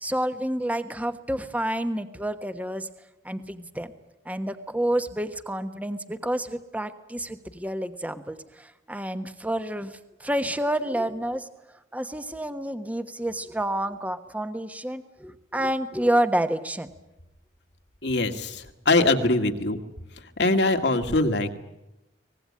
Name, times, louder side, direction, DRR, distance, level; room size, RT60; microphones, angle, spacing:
voice 1, 0.0-2.9 3.2-3.9 4.2-11.5 11.9-16.9, right 1 dB, 10° right, 9 dB, 1.2 m, -29 dB
voice 2, 18.0-19.8 20.4-21.5, left 2 dB, 65° left, 5 dB, 2.0 m, -22 dB
24.0 x 20.0 x 8.7 m, 0.94 s
head